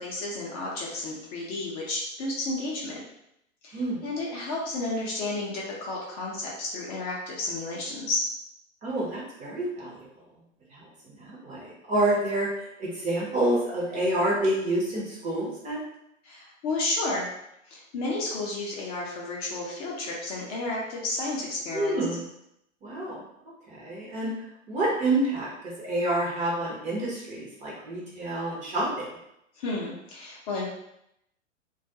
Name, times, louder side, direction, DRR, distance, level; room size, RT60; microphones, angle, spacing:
voice 1, 0.0-3.0 3.6-8.2 16.2-17.3 17.7-22.0 29.6-30.7, left 2 dB, 30° left, -4 dB, 0.5 m, -32 dB
voice 2, 3.7-4.0 8.8-10.1 10.7-10.9 11.1-12.5 12.8-15.8 21.7-22.3 22.8-23.2 23.7-24.3 24.7-25.5 25.8-29.1, right 1 dB, 20° right, -5 dB, 0.6 m, -28 dB
2.3 x 2.1 x 2.6 m, 0.79 s
hypercardioid pair, 105°, 39 cm